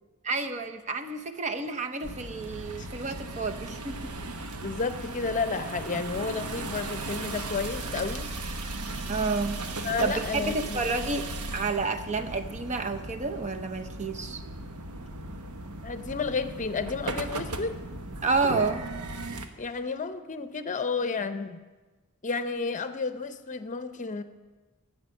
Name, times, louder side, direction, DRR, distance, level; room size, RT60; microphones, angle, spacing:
voice 1, 0.2-4.1 9.1-14.4 18.2-18.9, right 3 dB, 30° right, 7 dB, 0.8 m, -30 dB
sound 1, 2.0-19.5, right 2 dB, 85° right, 1.0 m, -37 dB
voice 2, 4.6-8.3 9.8-10.8 15.8-17.8 19.6-21.6 22.2-24.2, left 4 dB, 35° left, 10 dB, 0.7 m, -31 dB
12.5 x 8.5 x 6.5 m, 1.3 s
head